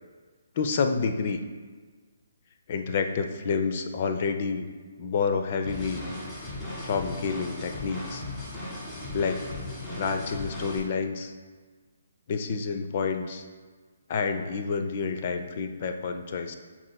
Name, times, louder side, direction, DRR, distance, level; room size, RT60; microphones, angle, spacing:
voice 1, 0.6-1.4 2.7-4.7 5.0-6.0 6.8-8.2 9.1-9.4 9.9-11.3 12.3-13.4 14.1-16.6, left 5 dB, 40° left, 7 dB, 0.6 m, -29 dB
sound 1, 5.7-10.8, left 2 dB, 20° left, 1.8 m, -37 dB
13.0 x 4.4 x 2.2 m, 1.5 s
figure-of-eight pair, 135°, 0 cm